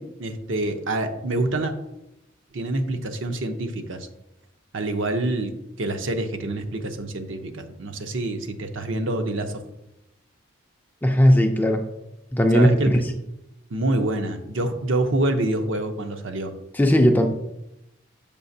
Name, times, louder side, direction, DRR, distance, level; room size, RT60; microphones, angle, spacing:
voice 1, 0.0-1.7 2.5-4.1 4.7-5.5 5.8-9.6 12.5-13.0 13.7-16.5, right 2 dB, 70° right, 7 dB, 0.7 m, -26 dB
voice 2, 11.0-11.8 12.3-13.0 16.7-17.3, equal, 10° left, 4 dB, 0.3 m, -17 dB
6.9 x 5.7 x 2.7 m, 0.86 s
head